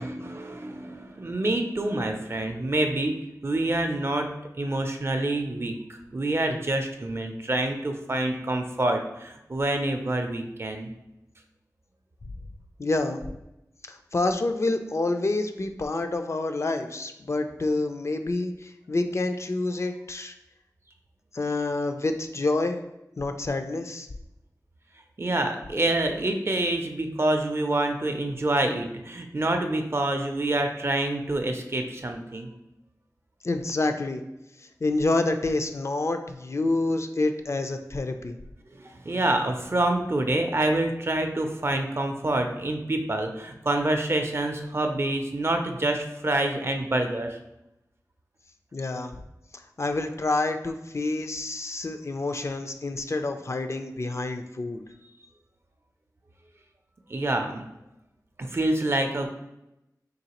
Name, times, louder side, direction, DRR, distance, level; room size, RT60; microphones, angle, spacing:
voice 1, 0.0-3.2 3.4-4.3 4.6-5.7 6.1-10.9 25.2-32.5 38.7-47.4 57.1-57.6 58.4-59.3, right 1 dB, 40° right, 5 dB, 0.4 m, -27 dB
voice 2, 12.8-13.2 13.9-20.4 21.3-22.9 23.2-24.1 33.4-34.2 34.6-38.4 48.7-49.2 49.5-54.8, left 2 dB, 45° left, 6 dB, 0.3 m, -28 dB
3.9 x 3.1 x 2.9 m, 0.89 s
wide cardioid pair, 60°, 7 cm